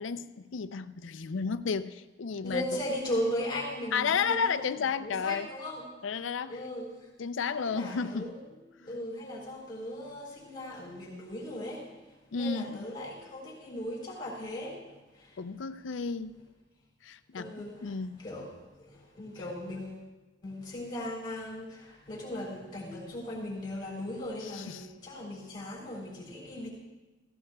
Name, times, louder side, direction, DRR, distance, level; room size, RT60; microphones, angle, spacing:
voice 1, 0.0-2.6 3.9-5.5 6.0-6.6 7.2-8.3 8.8-8.9 12.3-12.9 15.4-16.4 17.0-17.5 17.8-18.2 24.4-24.8, left 5 dB, 90° left, 0.5 m, -32 dB
voice 2, 2.4-5.9 6.5-7.1 7.6-8.4 8.8-15.4 17.3-20.1 20.4-26.7, left 1 dB, 25° left, 3.6 m, -38 dB
16.5 x 16.0 x 2.3 m
head